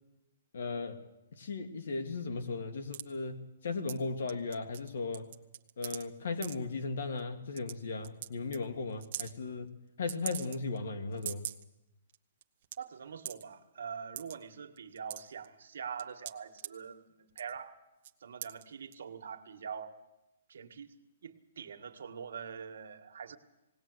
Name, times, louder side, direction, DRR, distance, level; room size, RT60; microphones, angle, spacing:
voice 1, 0.5-1.0 1.3-5.3 5.8-9.7 10.0-11.4, left 4 dB, 70° left, 6 dB, 2.3 m, -36 dB
sound 1, 2.9-3.1 3.9-4.0 4.3-4.9 5.1-6.0 6.4-6.6 7.2-7.3 7.6-7.7 8.0-8.3 8.5-8.6 9.0-9.3 10.1-10.8 11.1-11.6 12.1-12.2 12.4-12.8 13.3-13.4 14.2-14.4 14.8-15.5 16.0-16.7 17.3-17.6 18.0-18.1 18.4-18.6 18.9-19.0, right 12 dB, 40° right, 1.0 m, -41 dB
voice 2, 12.8-17.8 18.2-19.9 20.5-20.9 21.2-23.4, right 6 dB, 70° right, 5 dB, 1.8 m, -44 dB
19.5 x 18.5 x 8.0 m, 0.97 s
hypercardioid pair, 170°, 0 cm